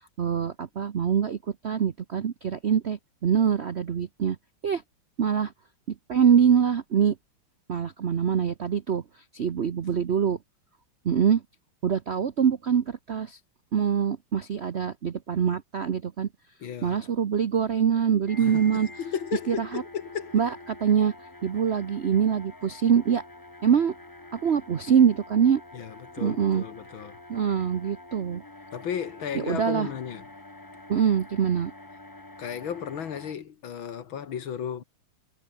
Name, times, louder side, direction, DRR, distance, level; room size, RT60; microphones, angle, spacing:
voice 1, 0.2-1.4 1.6-4.4 4.6-4.8 5.2-5.5 6.1-7.2 7.7-9.0 9.3-10.4 11.0-11.4 11.8-13.4 13.7-16.3 16.8-18.9 19.5-19.8 20.3-21.1 21.4-23.2 23.6-23.9 24.3-25.6 26.2-26.6 27.3-28.4 29.3-29.9 30.9-31.7, right 7 dB, 55° right, 0.7 m, -24 dB
voice 2, 16.6-17.0 18.4-20.4 25.7-27.2 28.7-30.2 32.4-34.8, left 8 dB, 75° left, 2.4 m, -34 dB
sound 1, 18.3-33.3, left 2 dB, 10° left, 1.3 m, -47 dB
omnidirectional pair, 2.3 m